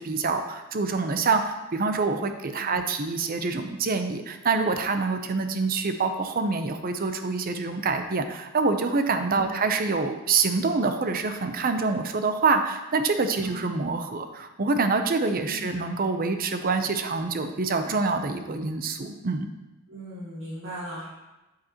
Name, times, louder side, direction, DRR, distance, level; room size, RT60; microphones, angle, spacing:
voice 1, 0.0-19.5, right 4 dB, 40° right, 7 dB, 0.6 m, -26 dB
voice 2, 9.3-9.6 13.4-13.9 15.4-15.7 19.9-21.1, equal, 70° right, -8 dB, 1.7 m, -39 dB
8.3 x 7.7 x 2.9 m, 1.0 s
head